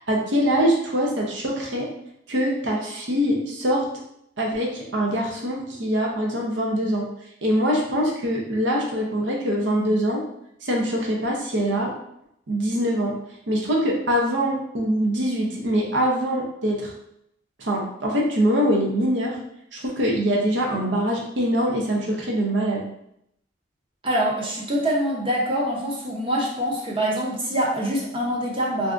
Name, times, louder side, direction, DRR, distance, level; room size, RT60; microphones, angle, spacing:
voice 1, 0.1-1.9 2.3-3.8 4.4-7.1 7.4-10.2 10.6-11.9 12.5-13.1 13.5-16.9 17.6-19.4 19.7-22.8, equal, 75° right, -1 dB, 0.7 m, -23 dB
voice 2, 24.0-28.9, equal, 30° right, -2 dB, 0.7 m, -25 dB
3.4 x 2.6 x 2.4 m, 0.76 s
head